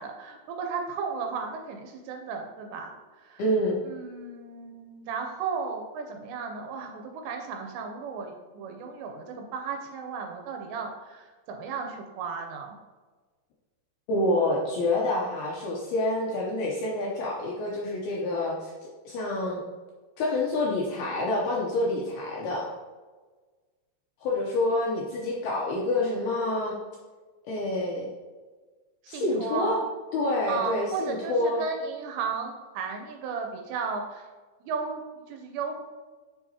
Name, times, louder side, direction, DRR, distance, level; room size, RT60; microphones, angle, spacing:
voice 1, 0.0-2.9 3.2-3.4 3.9-12.8 29.1-29.8 30.5-34.3 34.7-35.8, right 5 dB, 80° right, 3 dB, 2.7 m, -34 dB
voice 2, 3.4-3.8 14.1-18.7 19.1-19.6 20.2-22.7 24.2-26.8 27.5-28.1 29.1-29.8 30.1-31.6, left 2 dB, 75° left, -3 dB, 2.3 m, -27 dB
7.6 x 6.0 x 2.8 m, 1.3 s
omnidirectional pair, 5.3 m